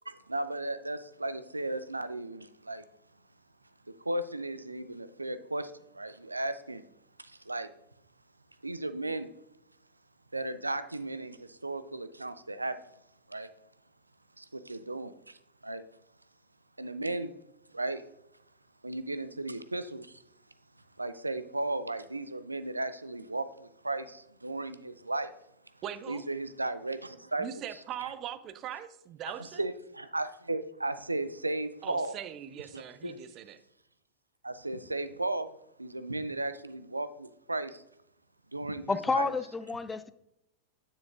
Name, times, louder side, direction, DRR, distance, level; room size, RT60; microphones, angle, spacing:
voice 1, 0.1-2.8 4.0-6.8 7.2-7.7 8.6-9.3 10.3-12.7 13.3-13.5 14.4-15.4 15.6-15.8 16.8-17.3 17.7-18.0 18.8-20.2 21.0-25.3 26.1-27.5 29.6-32.1 32.7-33.2 34.4-35.5 35.8-37.8 38.5-39.3, right 2 dB, 80° right, 0.5 m, -35 dB
voice 2, 25.8-26.2 27.4-29.6 31.8-33.6, right 10 dB, 35° right, 0.6 m, -41 dB
voice 3, 38.9-40.1, left 4 dB, 10° left, 0.4 m, -30 dB
9.2 x 7.5 x 2.4 m
figure-of-eight pair, 90°, 0 cm